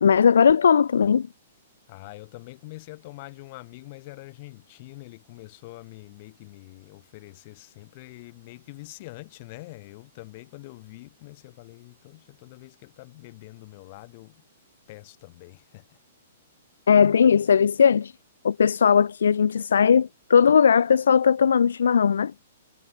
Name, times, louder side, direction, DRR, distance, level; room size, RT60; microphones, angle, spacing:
voice 1, 0.0-1.3 16.9-18.1 18.4-22.3, left 7 dB, 80° left, 0.3 m, -18 dB
voice 2, 1.9-14.4 14.9-16.0, left 22 dB, 45° left, 7.7 m, -45 dB
hypercardioid pair, 125°, 0 cm